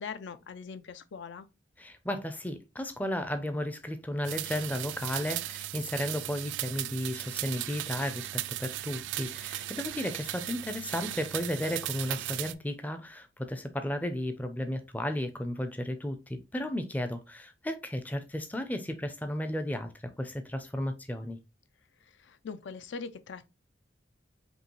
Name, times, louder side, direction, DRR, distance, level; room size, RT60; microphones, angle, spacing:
voice 1, 0.0-1.5 22.0-23.5, left 5 dB, 70° left, 0.4 m, -41 dB
voice 2, 1.8-21.4, left 1 dB, 10° left, 0.4 m, -34 dB
sound 1, 4.2-12.5, right 14 dB, 75° right, 0.3 m, -37 dB
5.3 x 2.8 x 3.0 m
head